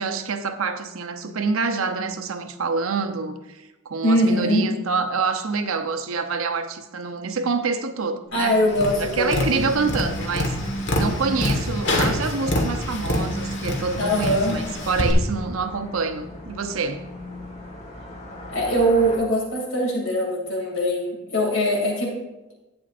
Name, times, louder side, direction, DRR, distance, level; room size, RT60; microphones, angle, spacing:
voice 1, 0.0-8.5 9.0-10.6 11.0-17.0, right 4 dB, 85° right, 7 dB, 0.8 m, -26 dB
voice 2, 4.0-4.7 8.3-9.5 14.0-14.6 18.5-22.2, equal, 70° left, -1 dB, 2.6 m, -22 dB
Tap, 8.7-15.1, left 1 dB, 55° left, 1.5 m, -26 dB
sound 1, 14.0-19.2, left 2 dB, 30° left, 1.3 m, -38 dB
11.5 x 8.7 x 2.5 m, 1.0 s
head